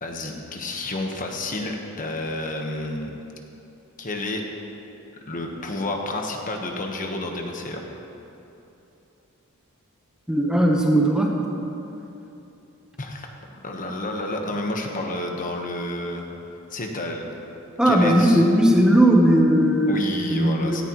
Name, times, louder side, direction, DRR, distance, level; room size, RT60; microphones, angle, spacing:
voice 1, 0.0-3.1 4.0-4.4 5.2-7.9 13.0-13.3 13.6-16.3 16.7-17.2 17.8-18.5 19.9-20.8, left 2 dB, 40° left, 2 dB, 1.2 m, -30 dB
voice 2, 10.3-11.3 17.8-20.0 20.3-20.8, right 1 dB, 5° right, -1 dB, 1.0 m, -18 dB
17.0 x 14.5 x 3.1 m, 2.9 s
head